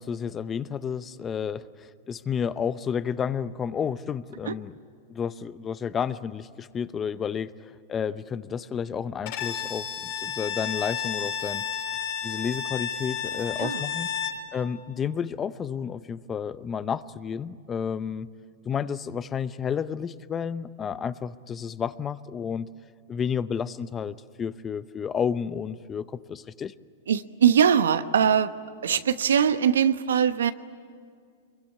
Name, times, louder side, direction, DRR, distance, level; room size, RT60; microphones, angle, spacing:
voice 1, 0.0-4.7 5.1-11.6 12.2-14.1 14.5-18.3 18.6-22.7 23.1-26.7, left 7 dB, 25° left, 15 dB, 0.8 m, -31 dB
Bowed string instrument, 9.3-14.5, left 8 dB, 60° left, 6.4 m, -32 dB
voice 2, 27.1-28.5 28.8-30.5, right 8 dB, 85° right, 11 dB, 1.0 m, -21 dB
25.0 x 22.5 x 9.8 m, 2.1 s
hypercardioid pair, 120°, 0 cm